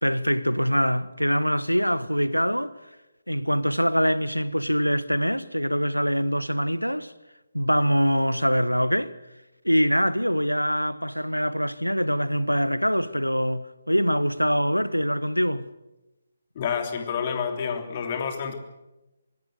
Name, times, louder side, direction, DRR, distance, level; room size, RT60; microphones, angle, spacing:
voice 1, 0.0-2.7 3.3-7.1 7.5-9.1 9.6-15.7, equal, 90° left, 1.3 m, -24 dB
voice 2, 16.5-18.5, left 6 dB, 35° left, 3.3 m, -28 dB
24.0 x 21.0 x 8.0 m
figure-of-eight pair, 140°, 0 cm